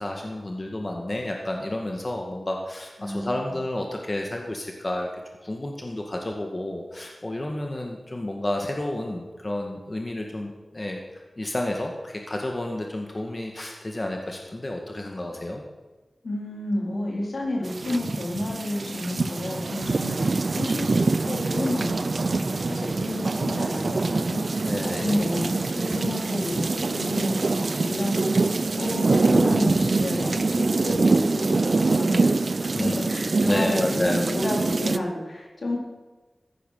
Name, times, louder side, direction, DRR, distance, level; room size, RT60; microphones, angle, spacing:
voice 1, 0.0-5.1 5.4-11.0 11.4-15.6 24.7-25.1 32.7-33.0 33.4-34.2, left 1 dB, 40° left, 1 dB, 2.0 m, -30 dB
voice 2, 3.0-3.5 16.2-28.5 28.8-35.8, left 1 dB, 80° left, -1 dB, 3.9 m, -30 dB
sound 1, 17.7-35.0, right 3 dB, 65° right, 0.6 m, -24 dB
14.5 x 9.9 x 6.6 m, 1.2 s
cardioid pair, 50°, 0 cm